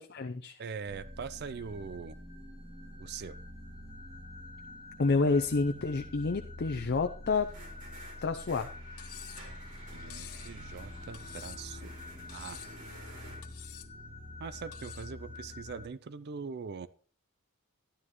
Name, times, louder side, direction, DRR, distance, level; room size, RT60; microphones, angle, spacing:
voice 1, 0.0-0.6 5.0-7.5 8.2-8.7, left 3 dB, 50° left, 7 dB, 0.6 m, -29 dB
voice 2, 0.6-2.2 3.0-3.4 9.9-11.9 12.3-12.6 14.4-16.9, right 5 dB, 50° right, 15 dB, 0.4 m, -42 dB
sound 1, 0.9-15.9, left 1 dB, 30° right, 2.6 m, -46 dB
sound 2, 7.3-13.4, right 1 dB, 90° right, 4.8 m, -52 dB
Cutlery silverware, 9.0-9.5 10.1-10.5 11.1-11.8 12.3-12.8 13.4-13.9 14.7-15.1, left 13 dB, 85° left, 0.8 m, -49 dB
12.0 x 11.5 x 3.1 m, 0.41 s
head